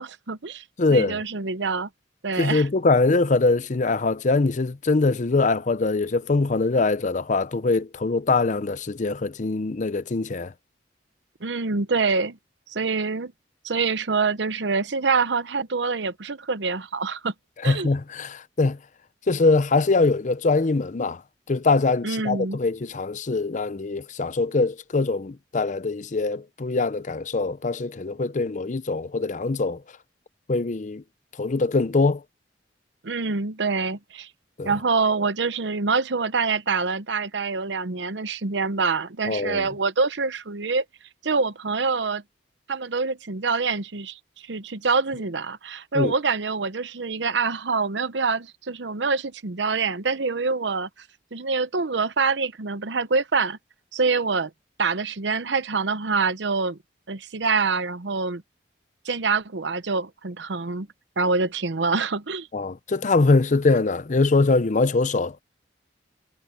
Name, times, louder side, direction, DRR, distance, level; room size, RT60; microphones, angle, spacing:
voice 1, 0.0-0.6 0.9-1.9 2.2-2.7 11.4-12.4 12.7-13.3 13.6-17.3 17.6-17.9 22.0-22.6 33.0-34.3 34.6-40.8 41.2-42.2 42.7-50.9 51.3-53.6 53.9-54.5 54.8-56.8 57.1-58.4 59.0-60.9 61.2-62.5, right 4 dB, 75° right, 0.9 m, -25 dB
voice 2, 0.8-1.2 2.4-10.5 17.6-18.8 19.3-21.2 21.5-29.8 30.5-31.0 31.4-32.2 34.6-34.7 39.2-39.7 45.9-46.1 62.5-65.4, left 3 dB, 45° left, 0.6 m, -23 dB
head